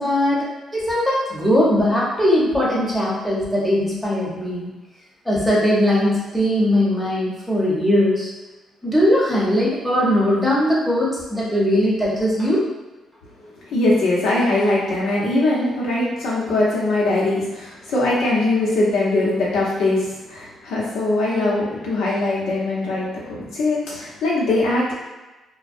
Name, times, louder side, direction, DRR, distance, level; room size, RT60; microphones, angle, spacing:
voice 1, 0.0-4.7 5.2-8.3 8.8-12.6, left 1 dB, ahead, -7 dB, 0.9 m, -20 dB
voice 2, 13.7-20.0 20.3-24.9, left 2 dB, 80° left, -6 dB, 0.8 m, -21 dB
2.2 x 2.1 x 2.6 m, 1.1 s
cardioid pair, 90°, 0 cm